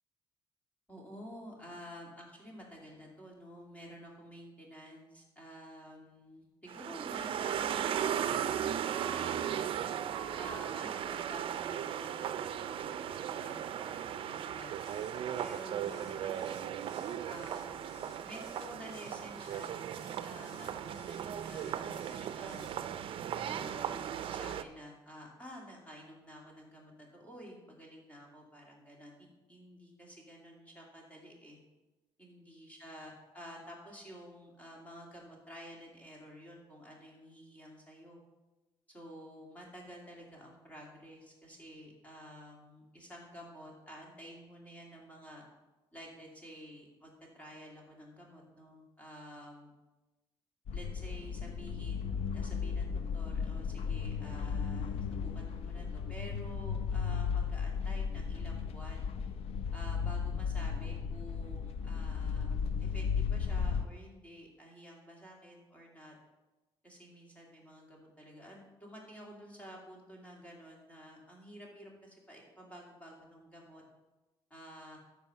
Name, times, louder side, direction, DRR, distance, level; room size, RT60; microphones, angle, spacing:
voice 1, 0.9-9.6 10.3-16.7 17.2-22.8 23.4-31.6 32.2-38.2 38.9-45.4 45.9-49.7 50.7-59.1 59.7-66.1 66.8-73.8 74.5-75.0, equal, 15° left, -2 dB, 2.6 m, -51 dB
sound 1, 6.7-24.6, right 9 dB, 60° right, 0.5 m, -37 dB
sound 2, 14.6-22.7, left 2 dB, 35° left, 1.8 m, -60 dB
sound 3, 50.7-63.8, left 6 dB, 75° left, 0.6 m, -35 dB
13.0 x 4.8 x 5.6 m, 1.1 s
cardioid pair, 135°, 10 cm